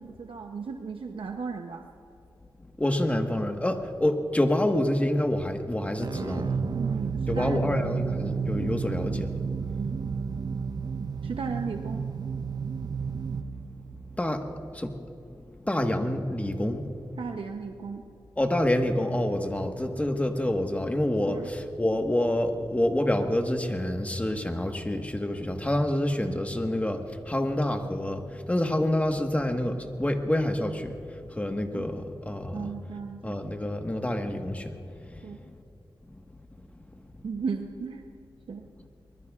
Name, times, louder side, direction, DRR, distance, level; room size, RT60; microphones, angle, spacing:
voice 1, 0.0-1.9 6.7-8.0 9.8-10.0 11.2-12.1 17.2-18.0 21.3-21.5 31.7-31.8 32.5-33.7 35.2-35.4 37.2-38.0 38.5-38.7, right 5 dB, 85° right, 4 dB, 0.8 m, -35 dB
voice 2, 2.8-6.6 7.3-9.3 13.8-13.9 14.2-15.0 15.6-17.0 18.4-32.7 33.2-34.8 35.0-35.4 36.1-36.2 36.9-37.0, left 1 dB, 15° left, 4 dB, 1.4 m, -27 dB
sound 1, 6.0-14.7, right 5 dB, 50° right, 0.5 m, -32 dB
24.0 x 21.0 x 2.5 m, 2.8 s
wide cardioid pair, 75°, 9 cm